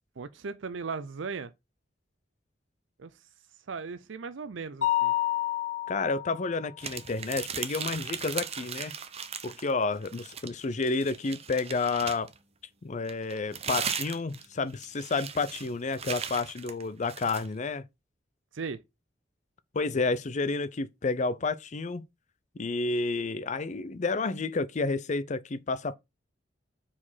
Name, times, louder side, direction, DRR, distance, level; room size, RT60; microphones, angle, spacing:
voice 1, 0.2-1.5 3.0-3.1 3.7-5.1 18.5-18.8, right 5 dB, 80° right, 0.6 m, -37 dB
Mallet percussion, 4.8-6.6, left 14 dB, 80° left, 1.2 m, -29 dB
voice 2, 5.9-8.9 9.4-12.3 12.8-17.9 19.7-22.0 22.6-25.9, left 3 dB, 40° left, 0.5 m, -30 dB
sound 1, 6.8-9.7 10.0-12.4 13.1-17.5, right 7 dB, 35° right, 0.7 m, -37 dB
4.9 x 4.3 x 5.6 m
head